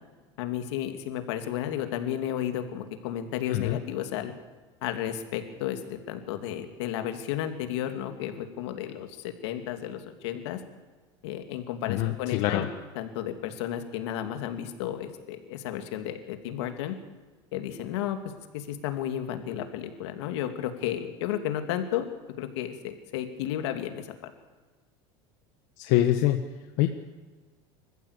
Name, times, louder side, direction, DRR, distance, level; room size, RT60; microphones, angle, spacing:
voice 1, 0.4-4.3 4.8-10.6 11.2-12.7 13.0-17.0 17.5-18.2 18.5-22.0 22.4-24.1, left 11 dB, 85° left, 6 dB, 2.8 m, -33 dB
voice 2, 11.9-12.7 25.8-26.4 26.8-26.9, left 13 dB, 65° left, 5 dB, 1.5 m, -24 dB
26.5 x 14.5 x 8.4 m, 1.3 s
supercardioid pair, 135°, 14 cm